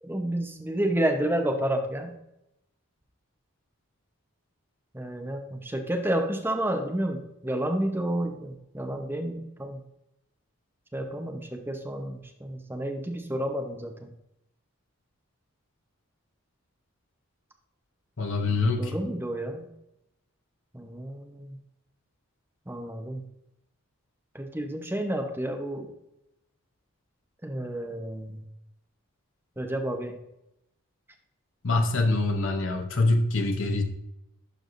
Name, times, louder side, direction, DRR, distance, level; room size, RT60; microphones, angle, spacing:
voice 1, 0.0-2.1 4.9-9.8 10.9-14.1 18.5-19.7 20.7-21.6 22.7-23.2 24.3-25.9 27.4-28.4 29.6-30.2, right 1 dB, 10° right, 3 dB, 0.8 m, -30 dB
voice 2, 18.2-19.0 31.6-33.8, left 2 dB, 60° left, 4 dB, 0.9 m, -25 dB
12.0 x 4.7 x 2.6 m, 0.85 s
head